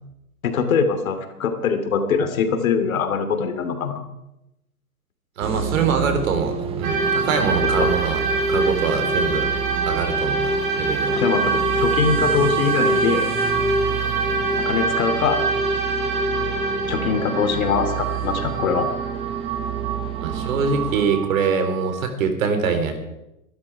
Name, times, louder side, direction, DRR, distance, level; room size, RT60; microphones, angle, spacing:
voice 1, 0.4-4.0 7.8-7.9 11.2-13.3 14.6-15.4 16.9-18.9, left 6 dB, 65° left, 7 dB, 2.9 m, -22 dB
sound 1, 5.4-21.1, right 10 dB, 15° right, 0.6 m, -31 dB
voice 2, 5.4-8.2 8.5-9.5 9.9-11.2 20.2-23.0, right 5 dB, 60° right, 7 dB, 3.7 m, -24 dB
sound 2, 6.8-22.0, right 3 dB, 35° right, 5.1 m, -24 dB
23.0 x 12.5 x 4.8 m, 0.90 s
hypercardioid pair, 125°, 44 cm